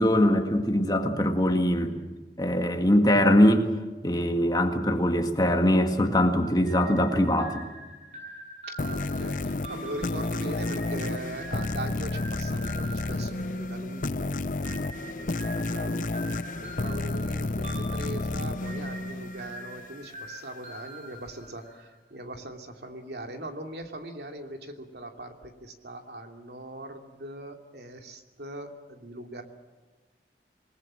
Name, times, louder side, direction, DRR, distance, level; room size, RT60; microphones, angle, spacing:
voice 1, 0.0-2.0 2.4-3.7 4.0-7.7, left 1 dB, 20° left, 5 dB, 1.8 m, -22 dB
sound 1, 6.6-14.1 14.6-21.9, right 1 dB, 40° right, 7.2 m, -45 dB
sound 2, 8.8-20.0, left 2 dB, 45° left, 0.7 m, -31 dB
voice 2, 8.8-14.4 14.7-16.1 16.6-29.4, right 1 dB, 70° right, 4 dB, 2.7 m, -41 dB
27.5 x 19.5 x 7.6 m, 1.3 s
head